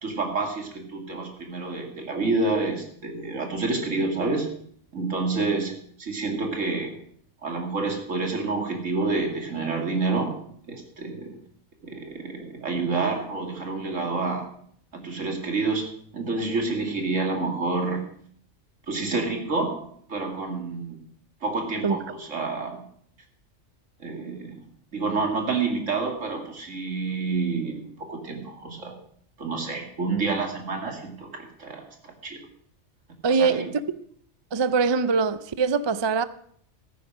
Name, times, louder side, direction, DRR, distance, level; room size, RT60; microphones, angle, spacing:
voice 1, 0.0-4.5 4.9-5.7 6.0-7.0 7.4-10.4 10.7-11.3 11.8-14.5 14.9-15.9 16.1-18.0 18.9-21.0 21.4-22.8 24.0-29.0 29.4-31.9 32.2-32.4 33.3-33.7, right 3 dB, 85° right, 2.7 m, -28 dB
voice 2, 33.2-33.7 34.5-36.2, right 5 dB, 40° right, 0.4 m, -23 dB
14.5 x 9.5 x 6.2 m
omnidirectional pair, 1.3 m